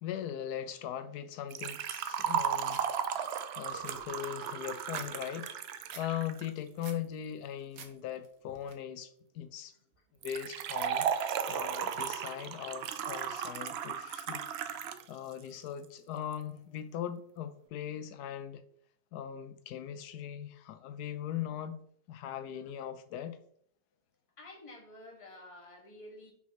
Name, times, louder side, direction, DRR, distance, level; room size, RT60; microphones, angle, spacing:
voice 1, 0.0-2.8 3.1-5.6 6.0-9.1 9.3-9.7 10.2-14.4 14.8-18.6 19.1-21.8 22.1-23.4, left 10 dB, 85° left, 1.1 m, -40 dB
Liquid, 1.5-6.5 10.2-15.0 15.3-15.4 16.3-16.4, right 8 dB, 85° right, 0.5 m, -35 dB
sound 1, 2.7-2.9 3.3-3.4 3.7-5.1 5.4-6.1 6.5-7.0 7.4-7.9 8.2-8.7, right 6 dB, 65° right, 1.3 m, -49 dB
voice 2, 24.4-26.3, left 1 dB, 20° left, 1.3 m, -50 dB
6.0 x 3.0 x 5.6 m
omnidirectional pair, 1.6 m